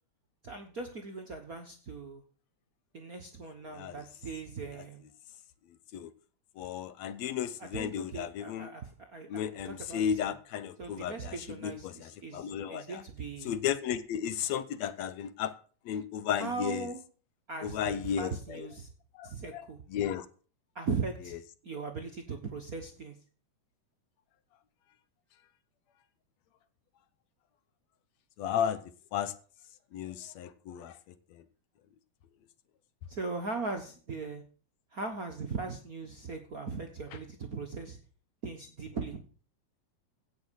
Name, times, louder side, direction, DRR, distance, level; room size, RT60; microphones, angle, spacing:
voice 1, 0.4-2.2 2.9-5.0 7.6-10.3 10.8-13.5 16.4-17.0 17.5-18.9 19.2-19.8 20.7-21.4 21.6-23.1 33.1-34.4 34.9-38.0 38.4-39.2, right 4 dB, 45° right, 4 dB, 1.2 m, -39 dB
voice 2, 6.6-8.7 9.3-13.0 13.4-15.5 15.9-16.9 17.6-18.7 19.1-20.3 28.4-28.8 29.1-29.3 29.9-31.4, left 9 dB, 70° left, 14 dB, 1.9 m, -34 dB
16.5 x 6.5 x 6.4 m, 0.40 s
omnidirectional pair, 3.3 m